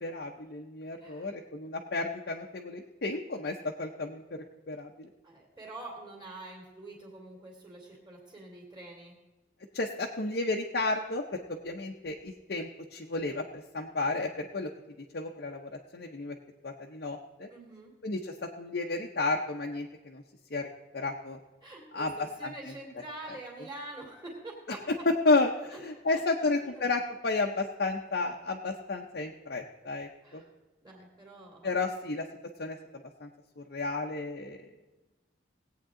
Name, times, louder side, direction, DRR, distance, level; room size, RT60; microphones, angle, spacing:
voice 1, 0.0-5.1 9.7-14.7 15.1-16.4 16.6-17.5 18.0-20.2 20.5-21.4 21.9-22.7 24.7-30.4 31.6-32.3 32.6-32.8 33.2-33.3 33.6-34.7, left 3 dB, 60° left, 1 dB, 0.7 m, -32 dB
voice 2, 5.2-9.1 17.5-17.9 21.6-24.8 25.7-25.8 26.1-26.2 26.6-26.8 30.2-30.5 30.8-31.8, right 2 dB, 20° right, -3 dB, 2.3 m, -46 dB
18.0 x 8.6 x 3.8 m, 1.1 s
head